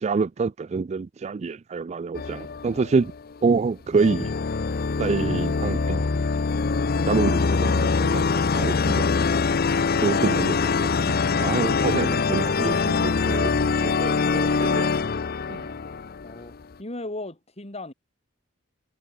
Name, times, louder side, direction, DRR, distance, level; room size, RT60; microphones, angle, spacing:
voice 1, 0.0-3.1 3.4-4.3 5.0-6.1 7.1-9.1 10.0-14.9 15.5-15.7, right 4 dB, 35° right, 0.3 m, -27 dB
sound 1, 2.1-3.4 4.0-16.6, left 4 dB, 50° left, 0.6 m, -24 dB
voice 2, 16.2-17.9, left 2 dB, 35° left, 3.5 m, -36 dB
head